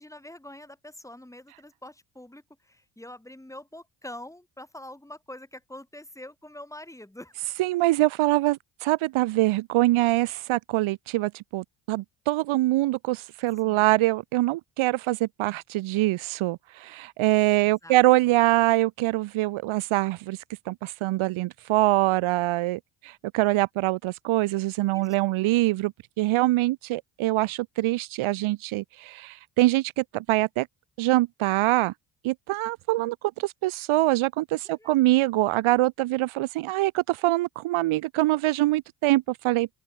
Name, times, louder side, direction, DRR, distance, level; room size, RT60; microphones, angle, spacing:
voice 1, 0.0-7.3 13.6-13.9 17.6-18.4 24.9-25.4 34.6-34.9, left 1 dB, 5° left, 4.1 m, -45 dB
voice 2, 7.6-20.4 20.7-25.9 26.2-30.7 31.0-31.9 32.2-39.7, right 18 dB, 70° right, 1.4 m, -24 dB
open air
supercardioid pair, 60°, 50 cm